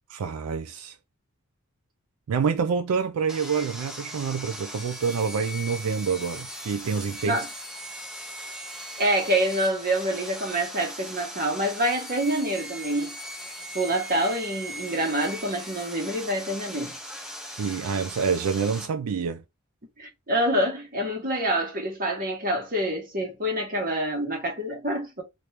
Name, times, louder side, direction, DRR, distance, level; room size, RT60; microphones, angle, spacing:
voice 1, 0.1-1.0 2.3-7.4 17.6-19.4, right 6 dB, 85° right, 0.4 m, -27 dB
Sawing, 3.3-18.9, equal, ahead, 0.6 m, -39 dB
voice 2, 9.0-13.1 13.7-16.9 20.0-25.2, right 1 dB, 40° right, 1.2 m, -26 dB
2.9 x 2.6 x 3.2 m
head